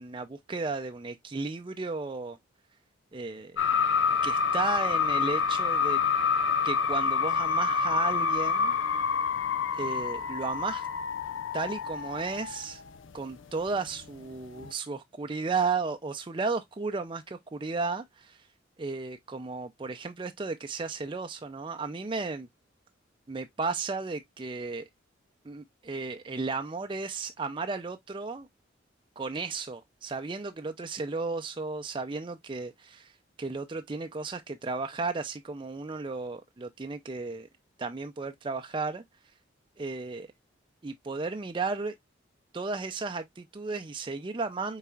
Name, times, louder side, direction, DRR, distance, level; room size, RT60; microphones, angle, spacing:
voice 1, 0.0-2.4 3.1-3.6 4.2-6.0 6.6-8.8 9.8-10.9 11.5-12.8 13.1-18.4 18.8-22.5 23.3-24.9 25.4-28.5 29.2-33.1 33.4-37.5 37.8-39.0 39.8-40.3 40.8-41.9 42.5-44.8, right 4 dB, 25° right, 0.4 m, -34 dB
sound 1, 3.6-13.1 13.4-14.2 14.4-14.7, left 6 dB, 85° left, 0.6 m, -27 dB
5.7 x 4.0 x 2.3 m
head